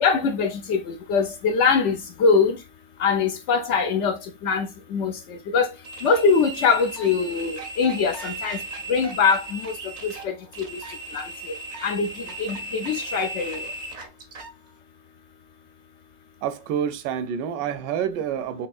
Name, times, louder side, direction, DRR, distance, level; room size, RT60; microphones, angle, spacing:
voice 1, 0.0-2.6 3.0-5.7 6.0-8.6 8.9-9.7 10.0-10.8 11.1-11.3 11.8-12.1 12.4-13.7, left 5 dB, 90° left, 0.6 m, -23 dB
sound 1, 5.8-14.5, right 2 dB, 55° right, 0.4 m, -36 dB
voice 2, 16.4-18.7, right 8 dB, 80° right, 1.2 m, -28 dB
4.4 x 2.9 x 2.4 m
omnidirectional pair, 1.9 m